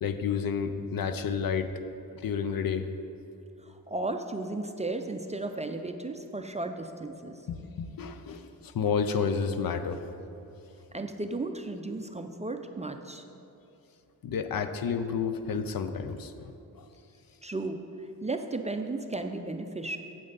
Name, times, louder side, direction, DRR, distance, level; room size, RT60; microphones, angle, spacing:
voice 1, 0.0-1.7 2.2-2.9 7.5-10.0 14.2-16.9, left 6 dB, 60° left, 10 dB, 0.6 m, -30 dB
voice 2, 3.6-7.4 10.9-13.2 17.4-17.9 18.2-20.0, right 2 dB, 20° right, 5 dB, 0.4 m, -34 dB
8.7 x 7.7 x 4.0 m, 2.9 s
cardioid pair, 90°, 39 cm